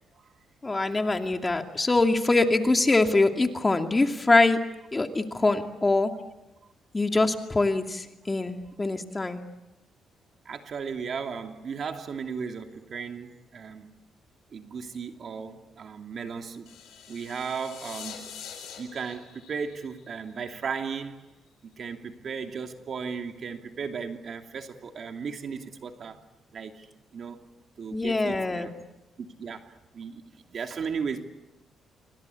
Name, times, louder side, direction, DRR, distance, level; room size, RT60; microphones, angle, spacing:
voice 1, 0.6-4.6 4.9-6.1 6.9-9.4 27.9-28.7, left 2 dB, 20° left, 2.5 m, -24 dB
voice 2, 10.4-14.0 14.5-16.7 17.1-18.3 18.8-21.3 21.6-26.9 27.1-27.4 27.8-28.7 29.2-31.2, right 6 dB, 55° right, 2.8 m, -36 dB
sound 1, 16.7-20.7, left 8 dB, 75° left, 6.7 m, -44 dB
27.5 x 25.0 x 8.5 m
cardioid pair, 90°, 0 cm